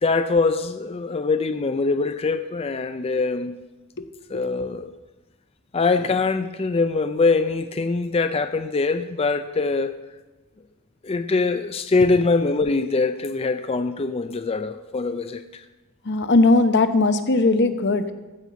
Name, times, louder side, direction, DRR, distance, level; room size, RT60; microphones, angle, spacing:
voice 1, 0.0-3.6 4.3-4.9 5.7-10.0 11.0-15.6, left 3 dB, 25° left, 0.4 m, -23 dB
voice 2, 16.0-18.1, left 2 dB, 50° left, 0.8 m, -18 dB
15.0 x 5.5 x 7.4 m
head